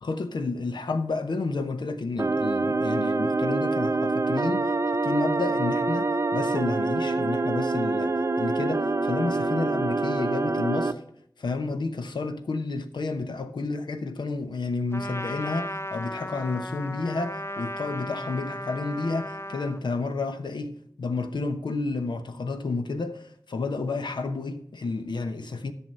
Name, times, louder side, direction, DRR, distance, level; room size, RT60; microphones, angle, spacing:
voice 1, 0.0-11.0 11.4-25.7, left 3 dB, 90° left, 0.9 m, -31 dB
sound 1, 2.2-10.9, right 3 dB, 40° right, 0.6 m, -26 dB
Trumpet, 14.9-19.8, left 1 dB, 35° left, 0.5 m, -35 dB
11.0 x 6.8 x 5.4 m
wide cardioid pair, 80°, 8 cm